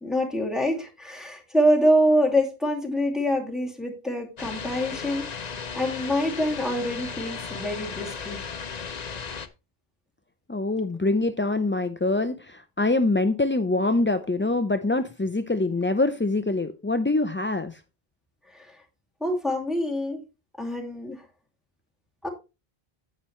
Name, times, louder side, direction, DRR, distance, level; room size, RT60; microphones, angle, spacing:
voice 1, 0.0-8.6 18.5-18.8 19.2-20.2 20.6-21.2 22.2-22.3, equal, ahead, 2.6 m, -25 dB
sound 1, 4.4-9.5, left 6 dB, 45° left, 0.8 m, -35 dB
voice 2, 10.5-17.8, left 2 dB, 20° left, 0.3 m, -24 dB
9.8 x 8.6 x 3.1 m
omnidirectional pair, 1.0 m